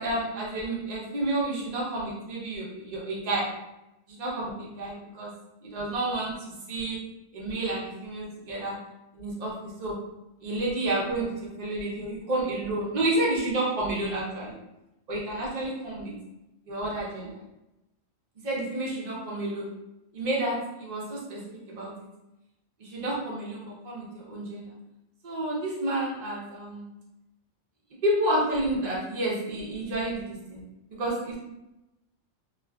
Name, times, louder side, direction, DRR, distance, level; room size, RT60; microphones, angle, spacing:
voice 1, 0.0-3.5 4.1-5.3 5.6-7.0 7.3-8.7 9.1-10.0 10.4-14.6 15.1-16.1 16.7-17.3 18.4-19.7 20.1-21.9 22.8-24.7 25.2-26.8 28.0-30.6 30.9-31.4, right 1 dB, 45° right, -4 dB, 0.6 m, -30 dB
2.3 x 2.3 x 2.2 m, 0.94 s
omnidirectional pair, 1.4 m